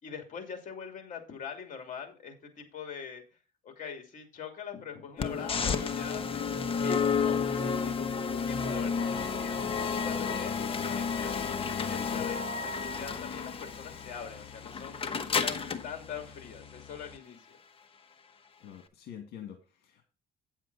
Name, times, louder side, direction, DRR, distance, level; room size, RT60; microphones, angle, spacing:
voice 1, 0.0-3.2 3.6-6.2 6.7-9.6 10.0-11.5 11.9-15.0 15.4-17.6, left 7 dB, 50° left, 4 dB, 2.8 m, -43 dB
sound 1, 5.2-17.2, left 5 dB, 35° left, 1.1 m, -32 dB
voice 2, 18.6-20.0, left 10 dB, 70° left, 4 dB, 2.0 m, -46 dB
9.2 x 7.4 x 4.1 m, 0.33 s
cardioid pair, 110°, 17 cm